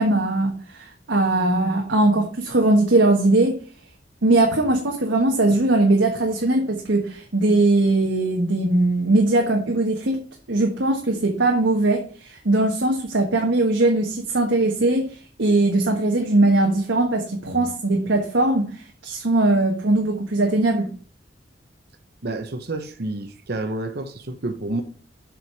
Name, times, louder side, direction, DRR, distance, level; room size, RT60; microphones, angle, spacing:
voice 1, 0.0-3.6 4.2-10.2 10.5-20.9, right 2 dB, 90° right, 1.4 m, -20 dB
voice 2, 22.2-24.8, right 2 dB, 60° right, 0.9 m, -29 dB
7.8 x 5.1 x 6.1 m
head